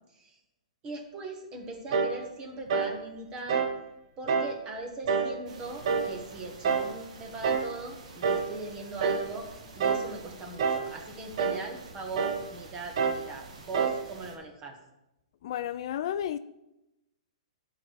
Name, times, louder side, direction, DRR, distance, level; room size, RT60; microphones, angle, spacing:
voice 1, 0.8-3.7 4.2-9.5 9.7-14.8, right 2 dB, 20° right, 3 dB, 1.4 m, -40 dB
sound 1, 1.9-2.2 2.7-3.0 3.5-3.8 4.3-4.6 5.1-5.4 5.8-6.2 6.6-6.9 7.4-7.7 8.2-8.5 9.0-9.3 9.8-10.1 10.6-10.9 11.4-11.7 12.2-12.5 13.0-13.3 13.7-14.1, right 5 dB, 55° right, 0.8 m, -27 dB
sound 2, 5.5-14.4, right 3 dB, 70° right, 1.7 m, -49 dB
voice 2, 15.4-16.4, left 10 dB, 50° left, 12 dB, 0.4 m, -32 dB
11.0 x 4.8 x 4.7 m, 0.92 s
hypercardioid pair, 155°, 4 cm